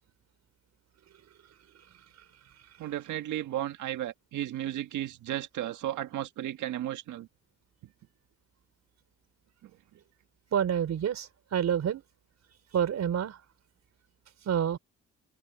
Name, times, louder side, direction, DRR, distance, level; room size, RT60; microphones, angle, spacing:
voice 1, 2.8-7.3 9.6-9.7, right 12 dB, 80° right, 1.8 m, -34 dB
voice 2, 10.5-12.0 12.7-13.4 14.5-14.8, right 9 dB, 60° right, 4.2 m, -28 dB
cardioid pair, 90°, 30 cm